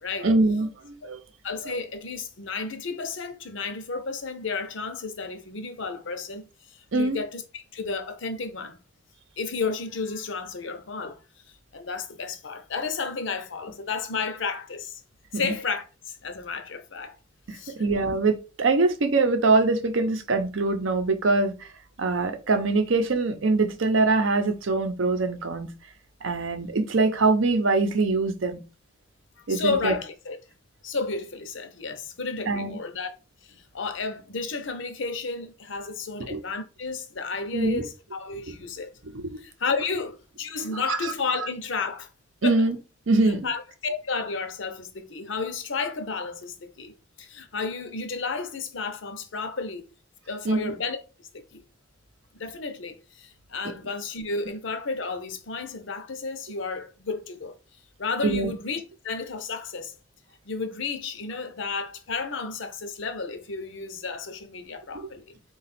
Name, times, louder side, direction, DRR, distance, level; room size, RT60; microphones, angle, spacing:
voice 1, 0.2-1.2 1.6-1.7 6.9-7.2 15.3-15.5 17.5-21.7 22.0-25.7 26.2-28.6 29.5-29.9 32.5-32.8 36.3-36.4 37.5-37.8 39.0-39.4 40.7-41.1 42.4-42.8 43.1-43.4 50.4-50.7 58.2-58.5, right 3 dB, 75° right, 0.7 m, -23 dB
voice 2, 1.4-6.5 6.9-8.8 9.4-11.2 11.7-15.0 15.3-15.8 16.2-17.1 17.5-17.7 29.5-30.4 30.8-33.1 33.4-38.9 39.4-42.1 42.4-42.6 43.3-49.8 50.3-51.0 51.3-51.6 52.3-57.5 58.0-59.9 60.5-65.2, left 4 dB, 70° left, 0.7 m, -32 dB
4.0 x 2.4 x 4.2 m
head